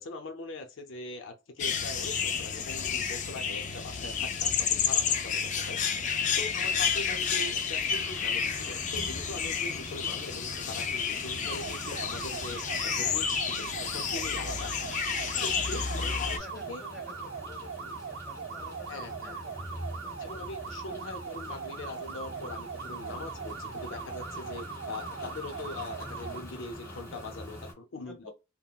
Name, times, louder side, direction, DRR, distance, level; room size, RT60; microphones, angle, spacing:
voice 1, 0.0-5.8 6.3-14.7 15.4-16.8 18.9-19.4 20.2-28.3, left 2 dB, 80° left, 0.7 m, -42 dB
sound 1, 1.6-16.4, left 6 dB, 40° left, 0.4 m, -30 dB
sound 2, 7.9-27.7, equal, 15° left, 1.5 m, -45 dB
sound 3, 11.4-26.4, right 6 dB, 65° right, 0.5 m, -41 dB
voice 2, 15.4-20.3 28.1-28.3, left 1 dB, ahead, 1.2 m, -50 dB
3.7 x 2.1 x 2.2 m
head